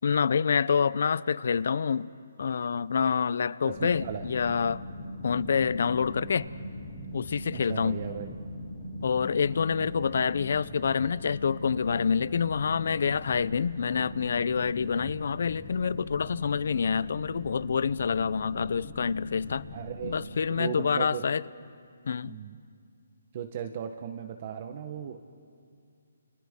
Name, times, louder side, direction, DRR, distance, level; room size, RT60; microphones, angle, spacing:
voice 1, 0.0-2.1 2.4-4.8 5.2-6.5 7.1-8.0 9.0-19.6 20.0-21.4 22.1-22.4, left 6 dB, 60° left, 20 dB, 0.5 m, -27 dB
voice 2, 3.6-4.3 7.5-8.4 10.2-10.3 15.0-15.1 19.7-21.2 22.2-22.6 23.3-25.2, right 8 dB, 35° right, 7 dB, 1.0 m, -37 dB
sound 1, 3.7-20.3, left 1 dB, 25° left, 3.7 m, -41 dB
30.0 x 28.5 x 3.7 m, 2.2 s
hypercardioid pair, 165°, 0 cm